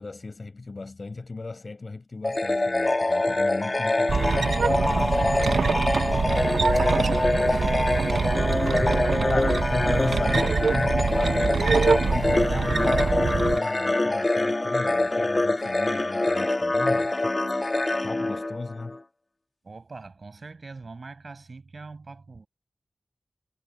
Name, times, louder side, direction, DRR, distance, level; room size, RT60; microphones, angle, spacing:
voice 1, 0.0-4.3 4.9-5.9 9.3-17.3 17.6-19.0, left 3 dB, 45° left, 6.3 m, -36 dB
sound 1, 2.2-19.0, left 2 dB, 30° left, 2.9 m, -25 dB
sound 2, 4.1-13.6, right 5 dB, 75° right, 1.3 m, -25 dB
voice 2, 6.8-8.6 19.6-22.5, right 3 dB, 50° right, 7.1 m, -44 dB
wide cardioid pair, 100°, 0 cm